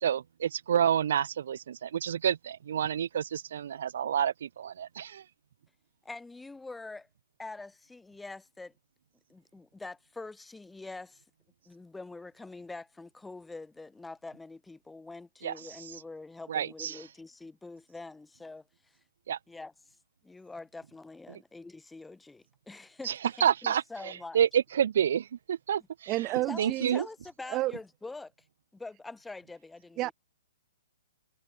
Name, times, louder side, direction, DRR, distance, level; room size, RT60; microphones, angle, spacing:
voice 1, 0.0-5.2 15.4-15.5 16.5-17.0 19.3-19.4 21.3-21.4 23.0-23.1 23.4-23.8 24.3-26.1 26.6-27.1, right 9 dB, 65° right, 1.2 m, -28 dB
voice 2, 6.0-7.1 7.4-8.7 9.3-11.2 11.7-19.0 19.5-19.7 20.2-23.1 23.4-24.4 26.5-28.3 28.7-30.1, left 3 dB, 5° left, 5.9 m, -45 dB
voice 3, 26.1-27.0 27.5-27.7 30.0-30.1, right 17 dB, 25° right, 1.7 m, -30 dB
hypercardioid pair, 145°, 0 cm